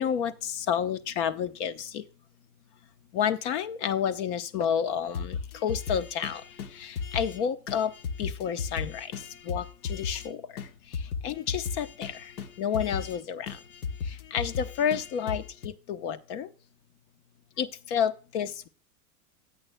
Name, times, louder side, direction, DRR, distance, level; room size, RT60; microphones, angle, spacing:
voice 1, 0.0-2.0 3.1-6.4 6.7-7.9 8.2-10.4 10.9-12.3 12.6-13.6 14.0-16.5 17.6-18.7, left 8 dB, 50° left, 1.0 m, -30 dB
sound 1, 5.1-7.4 7.7-10.3 10.6-10.7 10.9-13.2 13.5-15.7, left 5 dB, 75° left, 1.4 m, -35 dB
15.0 x 8.0 x 2.2 m
supercardioid pair, 130°, 44 cm